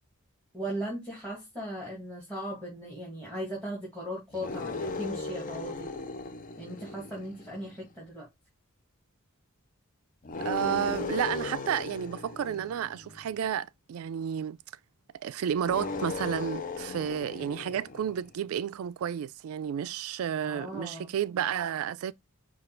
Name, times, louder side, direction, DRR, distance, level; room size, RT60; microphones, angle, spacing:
voice 1, 0.5-5.9 6.6-8.3 20.4-21.1, equal, 5° left, 1.7 m, -38 dB
sound 1, 4.3-7.9 10.2-13.4 15.6-18.3, left 3 dB, 40° left, 0.6 m, -37 dB
voice 2, 10.4-14.6 15.1-22.1, right 9 dB, 75° right, 0.3 m, -31 dB
5.1 x 2.4 x 4.3 m
head